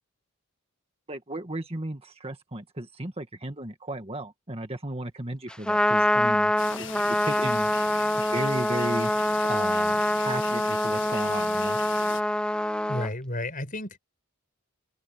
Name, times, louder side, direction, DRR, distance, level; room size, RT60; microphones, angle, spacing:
voice 1, 1.1-6.5 6.8-7.7 8.3-9.1 9.5-11.8, right 1 dB, 25° right, 1.8 m, -34 dB
Trumpet, 5.5-13.1, left 1 dB, 5° left, 0.7 m, -25 dB
sound 1, 6.6-12.2, left 7 dB, 55° left, 1.8 m, -39 dB
voice 2, 12.9-14.0, left 1 dB, 40° left, 6.2 m, -32 dB
head